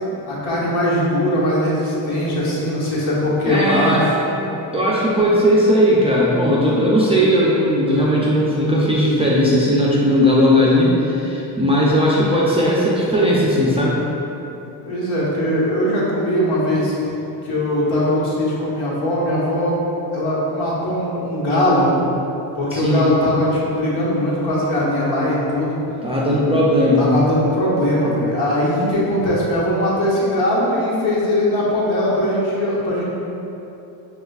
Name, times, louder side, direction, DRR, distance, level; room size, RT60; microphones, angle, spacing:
voice 1, 0.3-4.1 14.8-16.9 17.4-19.9 20.1-21.9 22.5-25.8 26.9-33.0, left 1 dB, 75° left, -6 dB, 1.3 m, -20 dB
voice 2, 3.4-4.1 4.7-14.0 22.7-23.1 26.0-27.1, equal, 15° right, -7 dB, 0.3 m, -17 dB
6.2 x 2.4 x 2.3 m, 3.0 s
cardioid pair, 100°, 47 cm